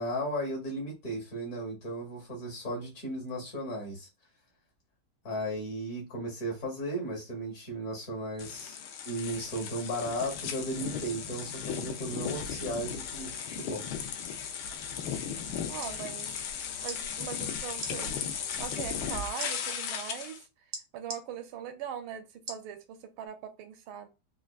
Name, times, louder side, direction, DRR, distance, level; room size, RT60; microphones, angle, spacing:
voice 1, 0.0-4.1 5.2-8.8 9.0-13.8 14.2-14.5 15.3-15.4, right 1 dB, 45° left, 1.6 m, -35 dB
sound 1, 8.4-20.4, left 7 dB, 80° left, 1.4 m, -36 dB
voice 2, 15.7-16.3 16.8-20.4 20.9-24.1, right 9 dB, 80° right, 1.4 m, -41 dB
sound 2, 15.8-16.0 16.8-17.0 17.7-17.9 19.4-19.5 20.7-21.2 22.5-22.7 23.3-23.4, right 3 dB, 60° right, 0.7 m, -39 dB
4.4 x 2.3 x 2.3 m
omnidirectional pair, 2.3 m